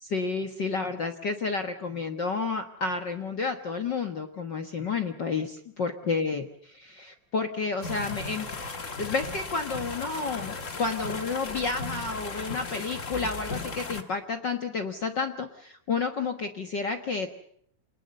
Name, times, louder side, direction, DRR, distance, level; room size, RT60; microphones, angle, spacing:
voice 1, 0.0-6.4 6.8-8.5 9.0-17.3, left 4 dB, 60° left, 7 dB, 1.1 m, -30 dB
sound 1, 7.8-14.0, left 3 dB, 40° left, 1.1 m, -36 dB
28.0 x 20.5 x 6.7 m, 0.64 s
omnidirectional pair, 4.1 m